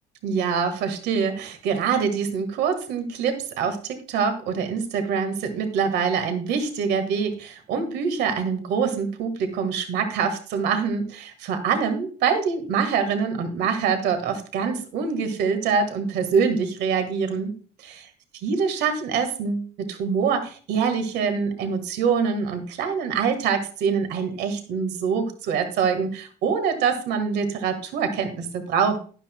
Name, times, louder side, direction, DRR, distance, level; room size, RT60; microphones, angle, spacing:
voice 1, 0.2-17.5 17.8-18.1 18.4-29.0, right 6 dB, 80° right, 7 dB, 1.6 m, -25 dB
12.0 x 10.5 x 2.2 m, 0.40 s
cardioid pair, 110°, 17 cm